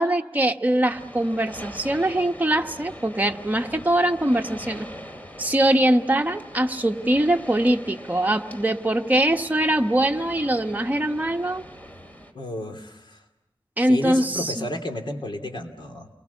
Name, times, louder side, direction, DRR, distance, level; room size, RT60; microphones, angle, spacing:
voice 1, 0.0-4.9 5.4-11.6 13.8-14.7, right 1 dB, 20° right, 4 dB, 1.2 m, -22 dB
sound 1, 0.9-12.3, equal, 20° left, 2.7 m, -42 dB
voice 2, 12.3-13.2 13.9-16.1, left 1 dB, 70° left, 3 dB, 3.0 m, -32 dB
29.5 x 22.5 x 7.2 m, 0.94 s
wide cardioid pair, 90°, 9 cm